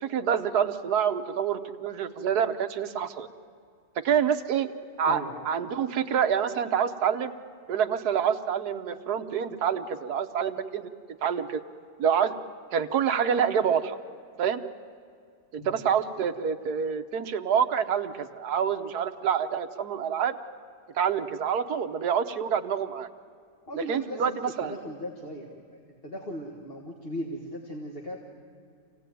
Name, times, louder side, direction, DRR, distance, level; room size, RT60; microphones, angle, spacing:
voice 1, 0.0-3.3 4.0-4.7 5.0-7.3 7.7-10.9 11.2-11.6 12.0-12.3 12.7-14.0 14.4-14.6 15.5-20.4 20.9-23.1 23.7-24.8, right 7 dB, 65° right, 8 dB, 1.4 m, -27 dB
voice 2, 5.1-5.5 15.6-15.8 23.7-25.5 26.0-28.2, equal, 35° left, 0 dB, 1.9 m, -37 dB
27.0 x 17.0 x 9.2 m, 2.3 s
omnidirectional pair, 1.8 m